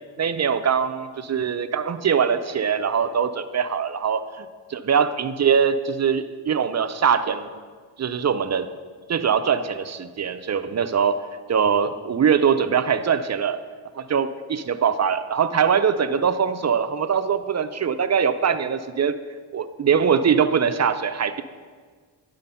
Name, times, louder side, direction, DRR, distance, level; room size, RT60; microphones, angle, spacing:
voice 1, 0.2-7.5 8.0-8.7 9.1-11.2 11.5-13.6 14.0-19.2 19.5-21.4, right 7 dB, 35° right, 11 dB, 0.5 m, -22 dB
10.5 x 3.8 x 5.6 m, 1.6 s
cardioid pair, 65°, 49 cm